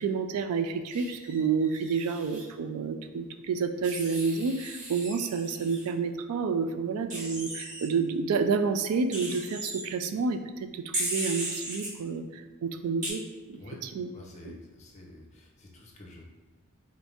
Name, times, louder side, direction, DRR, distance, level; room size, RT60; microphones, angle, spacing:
voice 1, 0.0-13.2 13.5-13.6 13.9-14.1 14.4-14.6, right 5 dB, 85° right, 9 dB, 0.3 m, -29 dB
Wild animals, 0.9-2.4 3.8-5.9 7.1-7.9 9.1-9.8 10.9-11.9 13.0-13.1, right 1 dB, 35° right, 1.0 m, -36 dB
voice 2, 13.5-16.3, left 2 dB, 30° left, -1 dB, 0.6 m, -48 dB
3.9 x 2.6 x 3.5 m, 1.4 s
head